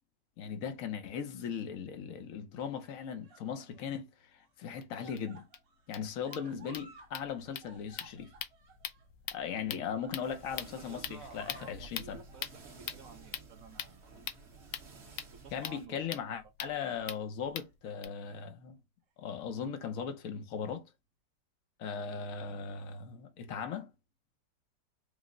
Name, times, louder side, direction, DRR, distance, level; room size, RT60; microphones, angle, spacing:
voice 1, 0.4-5.4 5.9-8.3 9.3-12.2 15.5-18.8 19.2-20.8 21.8-23.9, left 7 dB, 60° left, 1.0 m, -38 dB
sound 1, 1.3-1.8 2.7-4.0 4.4-7.1 7.4-10.9 11.2-11.8 12.3-12.6 13.2-14.2 14.6-14.8 15.4-15.9 16.3-16.5 17.6-18.2 19.1-19.2, right 4 dB, 80° right, 1.7 m, -59 dB
sound 2, 4.8-4.9 5.2-5.3 5.5-5.6 5.8-18.1, left 10 dB, 75° left, 1.2 m, -44 dB
sound 3, 10.2-15.9, right 3 dB, 45° right, 1.2 m, -53 dB
voice 2, 10.8-14.0 14.8-16.3 16.6-16.7, right 5 dB, 60° right, 0.9 m, -53 dB
5.1 x 2.1 x 3.7 m
omnidirectional pair, 2.0 m